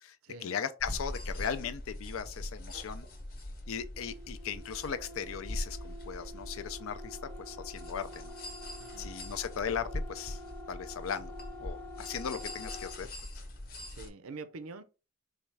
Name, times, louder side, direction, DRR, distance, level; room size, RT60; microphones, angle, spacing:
voice 1, 0.4-3.1 3.7-7.2 7.5-8.3 9.0-10.4 10.7-13.1, left 7 dB, 80° left, 0.4 m, -38 dB
sound 1, 0.8-14.1, left 1 dB, 45° left, 0.8 m, -42 dB
sound 2, 3.9-13.0, left 1 dB, 10° left, 0.6 m, -48 dB
voice 2, 8.8-9.1 13.9-14.8, right 3 dB, 90° right, 0.5 m, -45 dB
4.2 x 2.3 x 3.3 m
head